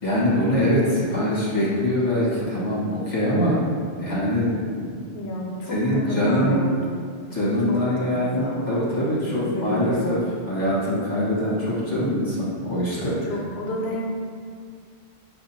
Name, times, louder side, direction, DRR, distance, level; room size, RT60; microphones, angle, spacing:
voice 1, 0.0-3.7 4.0-5.0 5.7-6.7 7.3-10.2 10.5-13.3, equal, 40° left, -9 dB, 1.4 m, -23 dB
voice 2, 5.1-7.1 7.7-9.0 9.4-10.2 13.3-14.1, left 1 dB, 70° left, -2 dB, 1.0 m, -31 dB
7.2 x 2.6 x 2.7 m, 2.1 s
omnidirectional pair, 1.1 m